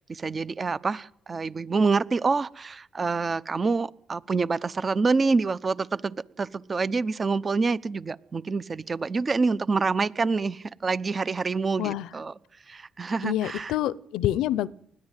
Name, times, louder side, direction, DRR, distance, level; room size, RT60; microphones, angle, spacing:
voice 1, 0.0-12.3 12.7-13.7, right 4 dB, 35° right, 0.9 m, -27 dB
voice 2, 11.8-12.1 13.2-14.7, left 13 dB, 90° left, 0.8 m, -27 dB
20.5 x 14.5 x 9.2 m
cardioid pair, 90°, 0 cm